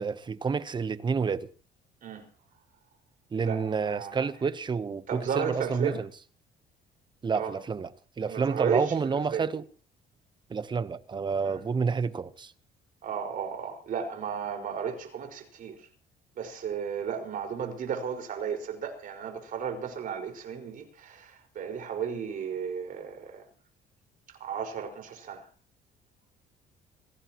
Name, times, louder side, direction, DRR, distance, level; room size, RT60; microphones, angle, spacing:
voice 1, 0.0-1.5 3.3-6.1 7.2-7.9 8.2-9.6 10.5-12.5, right 5 dB, 25° right, 1.0 m, -29 dB
voice 2, 3.4-4.3 5.1-6.0 7.3-7.5 8.3-9.5 11.4-11.6 13.0-15.9 16.3-23.5 24.3-25.5, right 7 dB, 55° right, 5.2 m, -34 dB
26.0 x 17.5 x 3.0 m
cardioid pair, 110°, 17 cm